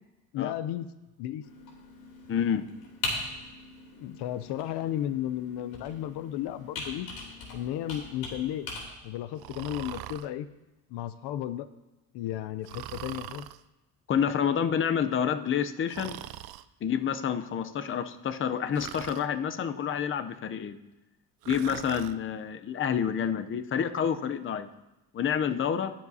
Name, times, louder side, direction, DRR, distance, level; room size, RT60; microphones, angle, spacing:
voice 1, 0.3-0.9 1.2-1.4 4.0-7.1 7.5-8.7 9.0-10.5 10.9-11.7 12.1-13.5, left 12 dB, 85° left, 13 dB, 0.6 m, -34 dB
Computer keyboard, 1.4-8.8, left 3 dB, 65° left, 3.2 m, -40 dB
voice 2, 2.3-2.7 14.1-16.2 16.8-20.8 21.5-24.7 25.1-25.9, left 8 dB, 30° left, 10 dB, 0.6 m, -28 dB
Breathing, 9.4-10.3 12.6-13.6 15.9-16.6 18.7-19.3 21.4-22.2, right 14 dB, 65° right, 0.5 m, -41 dB
20.5 x 7.5 x 2.7 m, 1.0 s
cardioid pair, 120°, 39 cm